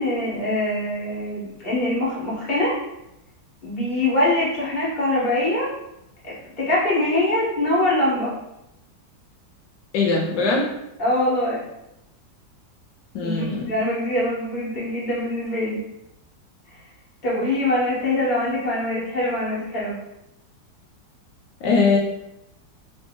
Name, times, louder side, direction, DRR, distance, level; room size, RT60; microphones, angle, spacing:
voice 1, 0.0-2.8 3.6-5.7 6.2-8.3 11.0-11.6 13.2-15.8 17.2-19.9, left 1 dB, 25° left, -8 dB, 1.4 m, -23 dB
voice 2, 9.9-10.7 13.1-13.7 21.6-22.0, left 4 dB, 75° left, -2 dB, 1.2 m, -20 dB
3.3 x 2.9 x 2.9 m, 0.87 s
omnidirectional pair, 2.0 m